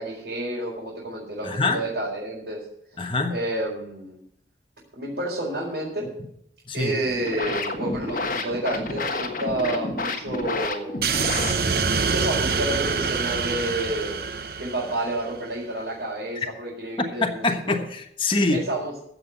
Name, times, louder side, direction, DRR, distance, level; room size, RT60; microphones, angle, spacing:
voice 1, 0.0-2.6 3.3-4.2 4.9-6.1 6.7-11.2 12.0-14.2 14.6-17.8 18.5-19.0, right 1 dB, 75° right, -6 dB, 4.5 m, -30 dB
voice 2, 1.4-1.8 3.0-3.3 6.7-6.9 17.2-18.6, left 3 dB, 30° left, 3 dB, 1.3 m, -24 dB
sound 1, 7.0-12.0, left 2 dB, 50° left, 1.4 m, -30 dB
sound 2, 11.0-15.4, right 5 dB, 55° right, 0.8 m, -26 dB
15.5 x 5.9 x 8.1 m, 0.72 s
head